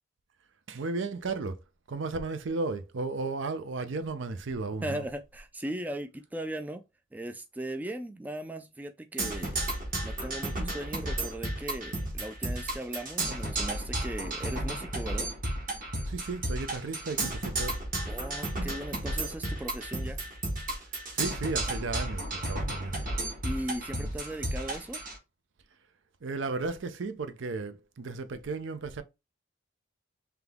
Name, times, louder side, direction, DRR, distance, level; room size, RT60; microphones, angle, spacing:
voice 1, 0.7-1.6 1.9-5.0 16.1-17.8 21.1-23.0 24.0-24.1 26.2-29.0, right 3 dB, 65° right, 0.5 m, -34 dB
voice 2, 4.8-6.8 7.1-9.6 10.0-15.3 18.1-20.2 23.4-25.0, right 1 dB, 10° right, 0.3 m, -38 dB
Percussion, 9.2-25.2, right 1 dB, 45° right, 1.3 m, -33 dB
3.6 x 2.9 x 3.5 m
head